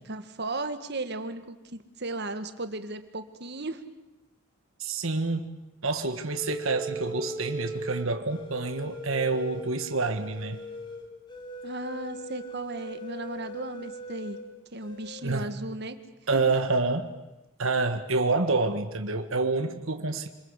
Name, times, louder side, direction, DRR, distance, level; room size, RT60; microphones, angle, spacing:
voice 1, 0.0-3.8 11.6-14.4 14.7-16.0 16.3-16.4, right 2 dB, 50° right, 9 dB, 1.8 m, -35 dB
voice 2, 4.8-10.6 15.2-15.5 16.3-17.1 17.6-20.3, right 3 dB, 70° right, 6 dB, 1.6 m, -28 dB
sound 1, 6.3-14.4 14.8-15.2, right 1 dB, 20° left, 3.5 m, -39 dB
27.0 x 21.0 x 8.3 m, 1.0 s
head